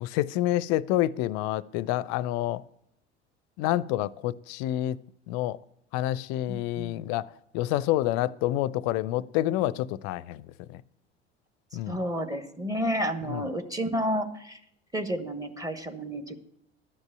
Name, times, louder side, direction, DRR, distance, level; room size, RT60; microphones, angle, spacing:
voice 1, 0.0-2.6 3.6-5.0 5.3-5.6 5.9-7.3 7.5-10.4 10.7-10.8 11.7-12.0 13.3-13.5, left 14 dB, 50° left, 0.5 m, -28 dB
voice 2, 6.5-7.0 11.9-14.6 14.9-16.4, equal, 10° right, 1.1 m, -31 dB
11.5 x 5.3 x 8.2 m
figure-of-eight pair, 65°, 34 cm